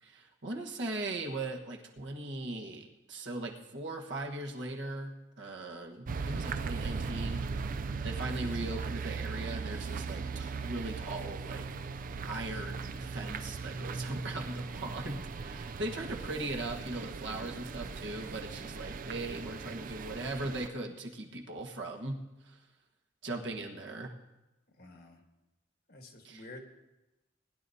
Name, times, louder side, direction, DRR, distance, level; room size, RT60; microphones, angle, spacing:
voice 1, 0.0-7.4 8.0-11.7 12.3-22.2 22.4-22.6 23.2-24.1 26.2-26.5, right 2 dB, 70° right, 1 dB, 1.3 m, -39 dB
sound 1, 6.1-20.7, right 4 dB, 45° right, 0.4 m, -38 dB
voice 2, 24.8-25.2 25.9-26.6, left 2 dB, 55° left, 4 dB, 1.5 m, -49 dB
20.0 x 10.5 x 2.8 m, 1.0 s
head